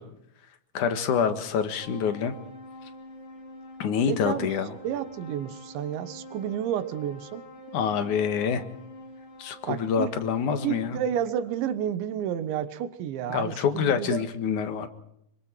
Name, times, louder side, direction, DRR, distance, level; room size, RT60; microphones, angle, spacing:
voice 1, 0.7-2.4 3.8-4.7 7.7-8.6 9.4-11.0 13.3-14.9, left 7 dB, 55° left, 9 dB, 2.5 m, -26 dB
sound 1, 1.7-10.8, equal, 80° left, 7.8 m, -46 dB
voice 2, 4.1-4.5 4.8-7.5 9.7-10.1 10.6-14.2, right 10 dB, 90° right, 11 dB, 3.7 m, -30 dB
26.0 x 24.5 x 4.6 m, 0.77 s
omnidirectional pair, 5.1 m